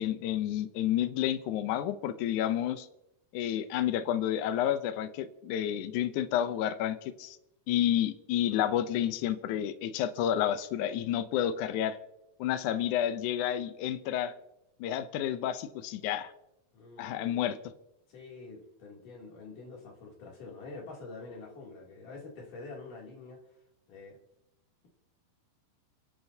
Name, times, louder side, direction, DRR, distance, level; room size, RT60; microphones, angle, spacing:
voice 1, 0.0-2.9 3.3-7.4 7.7-12.0 12.4-14.3 14.8-16.3 17.0-17.6, left 11 dB, 90° left, 11 dB, 1.7 m, -30 dB
voice 2, 12.7-13.1 16.7-17.4 18.1-23.6 23.9-24.2, left 3 dB, 55° left, -2 dB, 4.3 m, -46 dB
30.0 x 10.5 x 2.8 m, 0.87 s
omnidirectional pair, 4.5 m